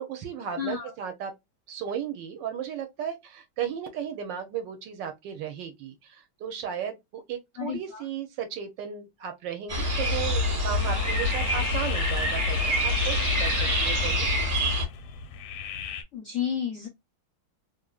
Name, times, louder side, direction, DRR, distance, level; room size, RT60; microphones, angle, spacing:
voice 1, 0.0-1.3 1.7-14.3, right 8 dB, 70° right, 1.2 m, -35 dB
voice 2, 0.6-0.9 7.6-8.0 16.1-16.9, left 8 dB, 60° left, 0.8 m, -31 dB
sound 1, 9.7-14.8, left 1 dB, 35° right, 1.4 m, -26 dB
sound 2, 10.7-16.0, left 8 dB, 90° left, 1.5 m, -36 dB
3.2 x 2.5 x 2.3 m
omnidirectional pair, 2.3 m